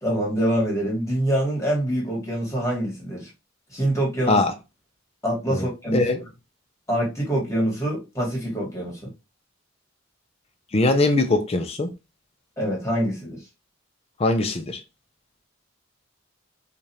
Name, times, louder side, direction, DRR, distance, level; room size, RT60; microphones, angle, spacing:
voice 1, 0.0-3.3 3.7-4.4 5.2-6.0 6.9-9.1 12.6-13.4, right 1 dB, 15° left, 1.5 m, -25 dB
voice 2, 10.7-11.9 14.2-14.8, left 2 dB, 30° left, 0.5 m, -21 dB
4.8 x 2.5 x 2.7 m
head